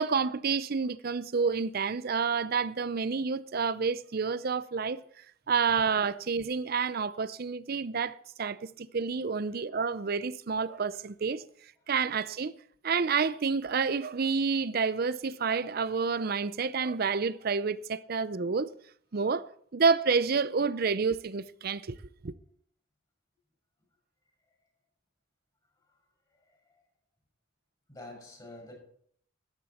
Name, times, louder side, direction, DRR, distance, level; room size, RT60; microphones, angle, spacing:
voice 1, 0.0-5.0 5.5-11.4 11.9-12.5 12.8-18.7 19.1-22.0 22.2-22.3, right 5 dB, 50° right, 0.5 m, -29 dB
voice 2, 26.3-26.8 27.9-28.8, left 2 dB, 20° left, 6.0 m, -49 dB
13.5 x 10.5 x 4.3 m
head